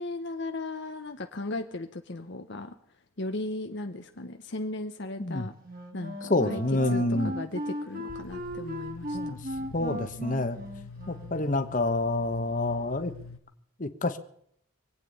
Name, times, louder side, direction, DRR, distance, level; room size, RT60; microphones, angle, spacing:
voice 1, 0.0-2.8 3.2-5.5 5.9-9.4, left 2 dB, 55° left, 6 dB, 0.9 m, -36 dB
Wind instrument woodwind instrument, 5.6-11.5, equal, 40° right, 2.5 m, -37 dB
voice 2, 6.3-7.3 9.1-9.4 9.7-10.6 11.1-13.1 13.8-14.2, left 2 dB, 40° left, 9 dB, 1.2 m, -27 dB
sound 1, 8.1-13.4, left 4 dB, 90° left, 1.3 m, -45 dB
24.5 x 9.2 x 5.4 m, 0.68 s
head